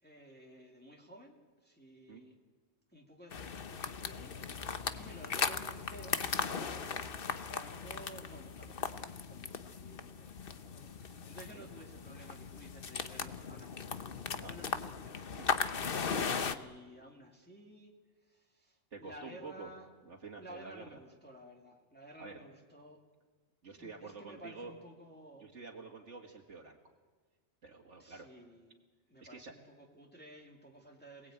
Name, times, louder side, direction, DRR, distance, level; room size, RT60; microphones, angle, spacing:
voice 1, 0.0-2.4 2.9-14.0 14.4-15.3 16.4-17.9 18.2-19.9 20.4-23.0 23.8-25.5 28.0-28.8 29.1-31.3, right 1 dB, 10° left, -1 dB, 2.4 m, -54 dB
sound 1, 3.3-16.5, left 6 dB, 55° left, 1.1 m, -38 dB
voice 2, 18.9-19.7 20.1-20.8 22.2-22.4 23.6-24.7 25.4-26.9 27.6-28.3 29.3-29.5, right 4 dB, 80° right, -1 dB, 2.4 m, -48 dB
27.5 x 19.5 x 8.8 m, 1.4 s
omnidirectional pair, 1.2 m